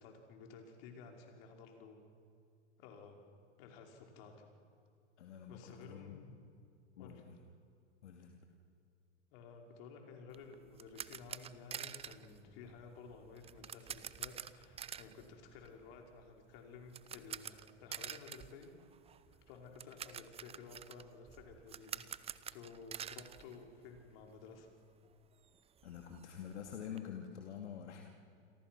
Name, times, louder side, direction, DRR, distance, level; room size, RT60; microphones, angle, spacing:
voice 1, 0.0-2.0 2.8-3.2 3.6-4.3 5.5-6.3 7.0-7.2 9.3-18.7 19.3-22.1 22.5-24.7, left 5 dB, 55° left, 2 dB, 5.2 m, -54 dB
voice 2, 5.2-6.2 7.0-7.4 8.0-8.3 25.8-28.0, left 8 dB, 75° left, 2 dB, 2.6 m, -47 dB
sound 1, 10.3-24.3 24.5-24.7 25.1-25.2 25.4-27.0, right 8 dB, 15° right, 0.7 m, -48 dB
29.0 x 23.0 x 6.2 m, 2.4 s
hypercardioid pair, 110°, 35 cm